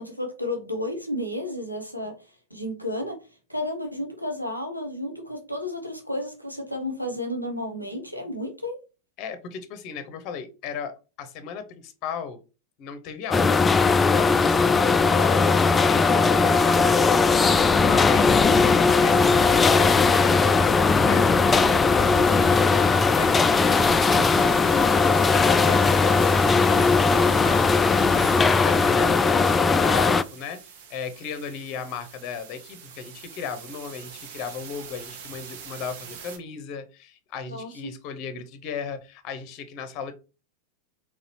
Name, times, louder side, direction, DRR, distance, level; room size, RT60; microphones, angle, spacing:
voice 1, 0.0-2.1 2.5-3.2 3.5-8.8 37.5-37.7, left 1 dB, 90° right, 1.0 m, -32 dB
voice 2, 9.2-10.9 11.2-12.4 12.8-16.9 17.8-18.6 19.0-20.8 21.1-24.7 25.2-30.6 30.9-40.1, left 6 dB, 40° left, 0.7 m, -36 dB
sound 1, 13.3-30.2, left 4 dB, 15° left, 0.3 m, -19 dB
sound 2, 21.5-36.4, right 7 dB, 50° right, 0.9 m, -43 dB
4.5 x 4.0 x 2.8 m
figure-of-eight pair, 90°, 0 cm